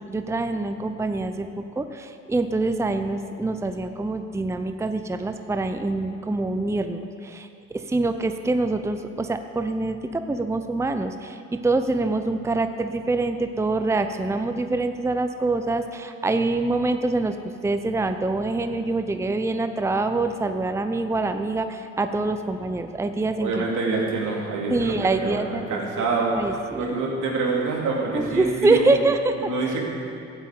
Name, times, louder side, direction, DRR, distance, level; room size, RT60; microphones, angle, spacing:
voice 1, 0.1-1.5 1.8-7.5 7.7-17.4 17.6-23.6 24.7-26.1 26.3-26.8 28.1-29.3, right 2 dB, 10° right, 8 dB, 0.6 m, -25 dB
voice 2, 23.4-29.0 29.4-29.9, right 3 dB, 80° right, -2 dB, 2.7 m, -26 dB
13.0 x 7.6 x 8.3 m, 2.5 s
cardioid pair, 90°, 30 cm